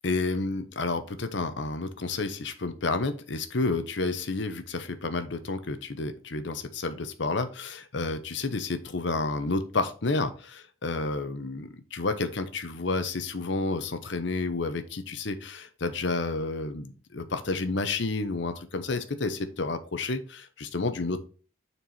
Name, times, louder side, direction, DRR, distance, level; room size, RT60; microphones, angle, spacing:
voice 1, 0.0-21.2, left 3 dB, 65° left, 9 dB, 0.9 m, -30 dB
6.6 x 4.6 x 4.4 m, 0.38 s
head